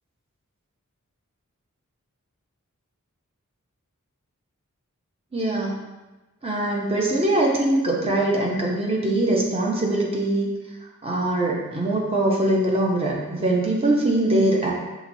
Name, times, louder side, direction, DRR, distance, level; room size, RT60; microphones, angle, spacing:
voice 1, 5.3-5.8 6.4-10.5 11.0-14.7, right 1 dB, 25° right, -2 dB, 0.8 m, -22 dB
5.8 x 3.0 x 2.7 m, 1.1 s
head